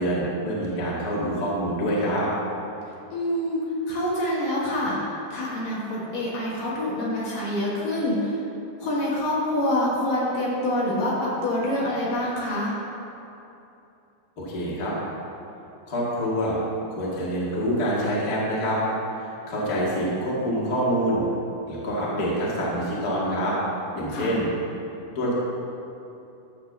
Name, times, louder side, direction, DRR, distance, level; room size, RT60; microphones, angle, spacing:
voice 1, 0.0-2.3 14.4-14.9 15.9-16.6 16.9-18.8 19.1-21.2 21.7-23.6 23.9-24.5 25.1-25.3, equal, 40° left, -7 dB, 1.3 m, -26 dB
voice 2, 3.1-3.6 3.9-8.4 8.8-12.7 24.1-24.4, left 1 dB, 60° left, -5 dB, 2.7 m, -26 dB
12.0 x 4.7 x 7.1 m, 2.8 s
omnidirectional pair, 5.1 m